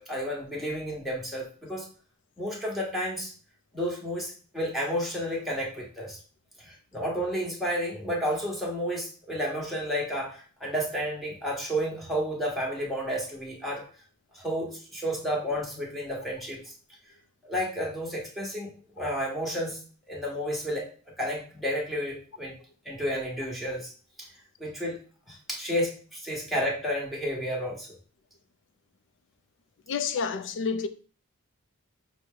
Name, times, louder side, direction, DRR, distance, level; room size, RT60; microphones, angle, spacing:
voice 1, 0.0-1.9 2.4-3.3 3.7-6.2 6.6-13.8 14.3-16.7 17.4-20.9 21.2-22.6 22.8-23.9 24.2-24.3 24.6-25.0 25.3-27.9, equal, ahead, 1.2 m, -31 dB
voice 2, 29.9-30.9, left 5 dB, 55° left, 0.4 m, -29 dB
6.2 x 2.1 x 3.7 m
head